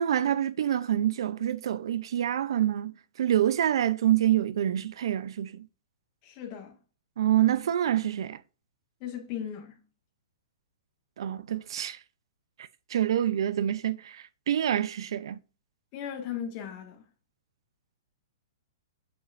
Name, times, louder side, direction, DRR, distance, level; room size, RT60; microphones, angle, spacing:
voice 1, 0.0-5.7 7.2-8.4 11.2-12.0 12.6-15.4, right 11 dB, 70° right, 0.5 m, -27 dB
voice 2, 6.2-6.8 9.0-9.8 15.9-17.0, left 9 dB, 35° left, 1.7 m, -37 dB
7.7 x 5.5 x 2.5 m
hypercardioid pair, 150°, 3 cm